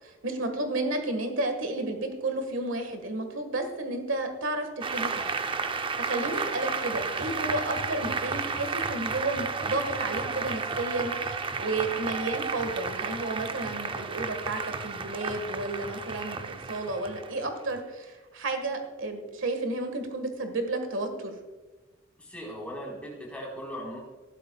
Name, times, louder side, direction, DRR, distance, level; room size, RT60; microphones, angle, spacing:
voice 1, 0.0-5.4 5.6-21.4, right 2 dB, 85° right, 6 dB, 1.6 m, -32 dB
Applause, 4.8-17.8, right 4 dB, 25° right, 0.5 m, -32 dB
voice 2, 22.2-24.0, equal, 5° left, -3 dB, 4.0 m, -38 dB
15.5 x 12.0 x 2.3 m, 1.2 s
head